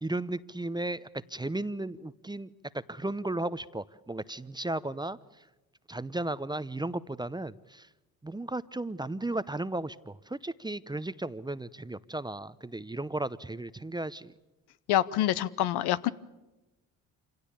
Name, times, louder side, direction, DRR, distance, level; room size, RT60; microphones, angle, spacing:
voice 1, 0.0-5.2 5.9-7.9 8.2-14.3, right 2 dB, 10° right, 16 dB, 0.8 m, -35 dB
voice 2, 14.9-16.1, left 13 dB, 65° left, 15 dB, 0.9 m, -26 dB
26.5 x 17.0 x 8.6 m, 1.1 s
hypercardioid pair, 55°, 41 cm